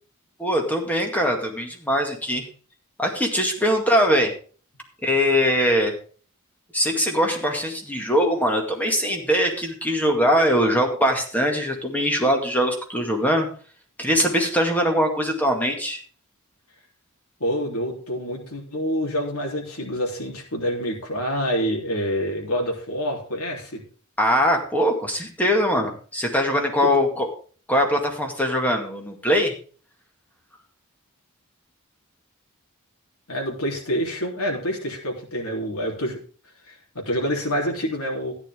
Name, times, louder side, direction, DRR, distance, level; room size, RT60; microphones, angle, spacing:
voice 1, 0.4-2.5 3.0-4.3 5.0-5.9 6.7-13.5 14.0-16.0 24.2-27.3 27.7-29.5, equal, 5° left, 2 dB, 2.1 m, -22 dB
voice 2, 17.4-23.8 26.8-26.9 33.3-36.2 36.7-38.3, equal, 85° left, 1 dB, 3.5 m, -27 dB
13.5 x 9.7 x 3.7 m, 0.40 s
head